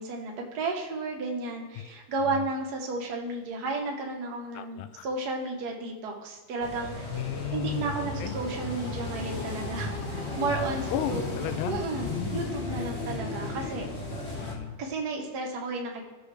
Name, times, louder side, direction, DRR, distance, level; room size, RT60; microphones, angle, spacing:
voice 1, 0.0-7.2 7.5-11.3 11.7-13.8 14.8-16.0, right 3 dB, 80° right, 0 dB, 0.9 m, -33 dB
voice 2, 4.5-5.1 7.1-8.3 10.9-12.4 14.3-14.8, left 10 dB, 80° left, 11 dB, 2.0 m, -34 dB
sound 1, 6.6-14.5, left 2 dB, 60° left, 0.6 m, -34 dB
15.5 x 6.3 x 3.3 m, 1.3 s
omnidirectional pair, 3.6 m